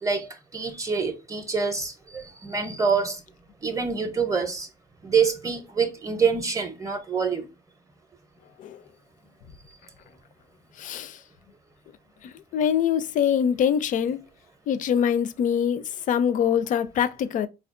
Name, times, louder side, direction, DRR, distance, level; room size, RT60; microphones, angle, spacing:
voice 1, 0.0-3.2 3.6-4.7 5.0-7.5, right 5 dB, 20° right, 0.6 m, -26 dB
voice 2, 10.8-11.2 12.5-14.2 14.7-17.5, left 8 dB, 50° left, 0.4 m, -24 dB
4.3 x 2.3 x 2.5 m
cardioid pair, 110°, 17 cm